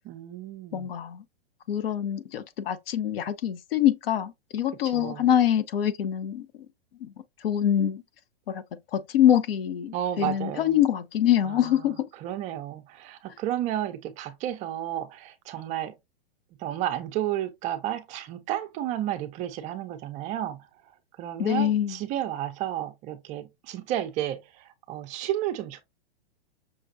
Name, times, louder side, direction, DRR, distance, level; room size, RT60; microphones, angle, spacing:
voice 1, 0.0-0.9 4.8-5.3 9.9-10.8 11.4-16.0 16.6-25.8, right 12 dB, 25° right, 0.4 m, -32 dB
voice 2, 0.7-1.2 1.7-6.5 7.4-8.0 8.5-8.6 8.9-12.1 21.4-21.9, left 10 dB, 70° left, 0.7 m, -24 dB
5.8 x 2.3 x 2.5 m
hypercardioid pair, 125°, 30 cm